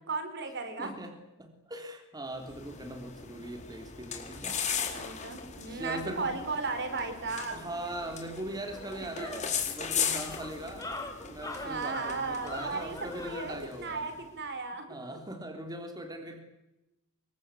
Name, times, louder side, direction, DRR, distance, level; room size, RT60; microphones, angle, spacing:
voice 1, 0.1-0.9 4.8-7.7 9.0-9.3 11.6-14.9, right 4 dB, 50° right, 8 dB, 4.6 m, -35 dB
voice 2, 0.8-4.6 5.7-6.3 7.5-14.1 14.9-16.4, right 1 dB, 20° right, 4 dB, 3.4 m, -40 dB
sound 1, 2.4-14.1, left 7 dB, 35° left, 4.1 m, -38 dB
sound 2, 8.0-8.1 8.5-13.5, left 2 dB, 15° left, 3.9 m, -42 dB
26.5 x 23.5 x 8.4 m, 0.96 s
head